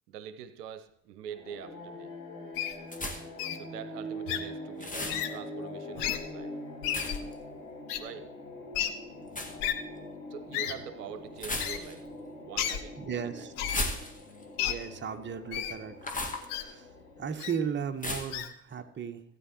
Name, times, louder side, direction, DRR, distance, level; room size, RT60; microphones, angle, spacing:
voice 1, 0.1-2.1 3.5-6.6 8.0-8.3 10.3-12.0 12.4-12.9 13.4-13.5, right 8 dB, 70° right, 11 dB, 0.8 m, -44 dB
sound 1, 1.3-17.9, left 1 dB, 85° left, 4.6 m, -44 dB
Wild animals, 2.5-2.7 3.4-3.6 4.3-4.4 5.1-5.3 6.0-6.2 6.8-7.2 7.9-8.0 8.7-8.9 9.6-9.7 10.5-10.7 11.6-11.8 12.6-12.8 13.6-13.8 14.6-14.7 15.5-15.7 16.5-16.6 17.4-17.5 18.3-18.5, left 10 dB, 65° left, 1.1 m, -31 dB
sound 2, 2.9-3.4 4.8-5.2 6.9-7.3 9.3-9.6 11.4-12.1 13.6-14.4 16.0-16.5 18.0-18.4, left 1 dB, 15° left, 1.8 m, -35 dB
voice 2, 13.0-13.5 14.6-16.0 16.4-19.2, right 7 dB, 25° right, 6 dB, 1.0 m, -36 dB
16.0 x 9.3 x 3.0 m, 0.75 s
figure-of-eight pair, 60°, 49 cm